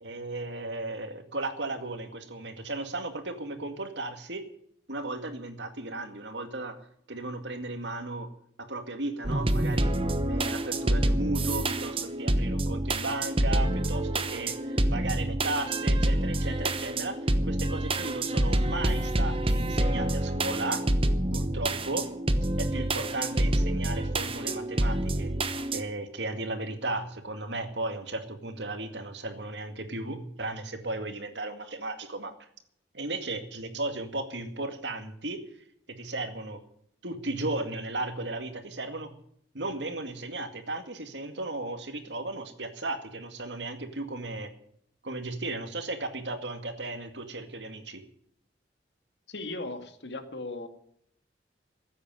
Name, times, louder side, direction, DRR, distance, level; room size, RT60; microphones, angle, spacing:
voice 1, 0.0-4.4 4.9-6.8 7.1-8.3 8.6-10.0 10.3-17.2 17.4-20.8 21.3-22.1 22.6-25.3 25.7-32.3 32.9-35.4 35.9-36.6 37.0-39.1 39.5-44.5 45.0-48.0, right 2 dB, 80° right, 7 dB, 2.2 m, -35 dB
sound 1, 9.2-25.8, right 1 dB, 30° right, 1.1 m, -27 dB
voice 2, 49.3-50.7, left 2 dB, 75° left, 7 dB, 2.1 m, -37 dB
15.5 x 8.6 x 9.1 m, 0.69 s
head